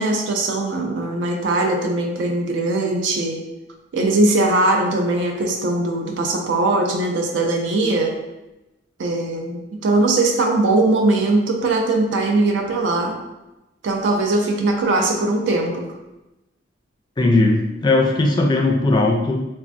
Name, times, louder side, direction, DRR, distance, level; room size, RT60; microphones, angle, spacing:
voice 1, 0.0-3.4 3.9-8.2 9.0-13.2 13.8-15.9, right 2 dB, 70° right, 2 dB, 0.4 m, -20 dB
voice 2, 17.2-19.5, left 2 dB, 25° left, 1 dB, 0.3 m, -18 dB
3.3 x 2.1 x 2.5 m, 0.99 s
head